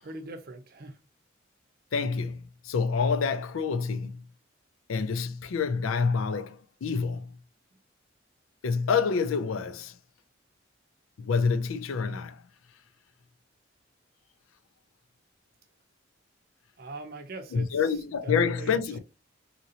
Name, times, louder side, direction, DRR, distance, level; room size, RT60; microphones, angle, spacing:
voice 1, 0.0-1.0 16.8-19.0, right 3 dB, 50° right, 0.6 m, -42 dB
voice 2, 1.9-4.2 4.9-7.4 8.6-10.0 11.2-12.4 17.5-19.0, left 5 dB, 85° left, 0.4 m, -27 dB
2.9 x 2.7 x 2.7 m
head